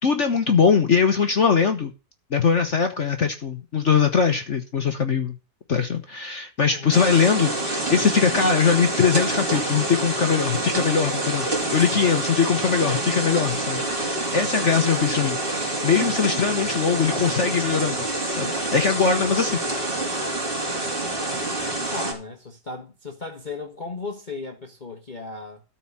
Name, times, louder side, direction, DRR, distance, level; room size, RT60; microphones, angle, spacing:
voice 1, 0.0-1.9 2.3-5.3 5.7-13.8 14.1-19.6, left 6 dB, 45° left, 1.2 m, -21 dB
voice 2, 6.7-7.1 21.6-25.6, left 3 dB, 30° left, 1.3 m, -36 dB
sound 1, 6.9-22.1, right 2 dB, 30° right, 3.4 m, -27 dB
13.0 x 4.6 x 7.2 m
omnidirectional pair, 2.0 m